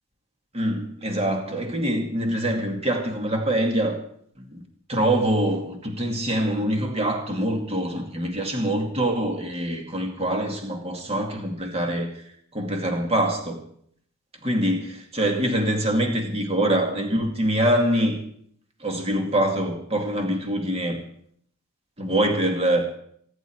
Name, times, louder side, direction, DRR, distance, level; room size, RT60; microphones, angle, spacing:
voice 1, 0.5-4.0 4.4-4.6 4.9-12.1 12.5-13.6 14.4-18.2 18.8-21.0 22.0-22.8, right 1 dB, 25° right, 2 dB, 2.4 m, -24 dB
24.5 x 11.0 x 4.7 m, 0.67 s
head